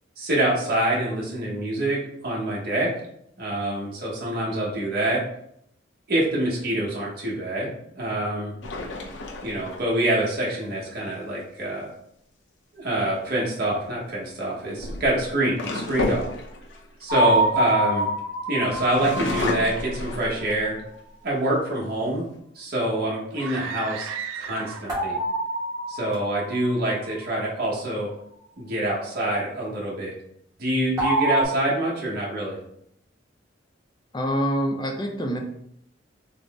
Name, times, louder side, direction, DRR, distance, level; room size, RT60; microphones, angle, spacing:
voice 1, 0.2-2.9 3.4-5.2 6.1-7.7 7.9-8.5 9.4-11.9 12.7-16.2 17.0-18.1 18.5-20.8 21.2-22.3 22.5-24.1 24.3-25.2 25.9-28.1 28.6-30.1 30.6-32.6, right 1 dB, 50° right, -5 dB, 1.0 m, -26 dB
sound 1, 8.6-10.2 13.2-13.5 14.4-18.2 18.7-20.8 21.4-21.5 21.8-22.4, left 2 dB, 70° left, 0.7 m, -32 dB
sound 2, 17.1-20.1 24.9-27.1 31.0-31.4, right 1 dB, 20° right, 1.1 m, -26 dB
sound 3, 23.3-25.1, right 7 dB, 80° right, 0.3 m, -35 dB
voice 2, 34.1-35.4, equal, 25° left, 2 dB, 0.5 m, -25 dB
3.9 x 2.1 x 3.5 m, 0.73 s
head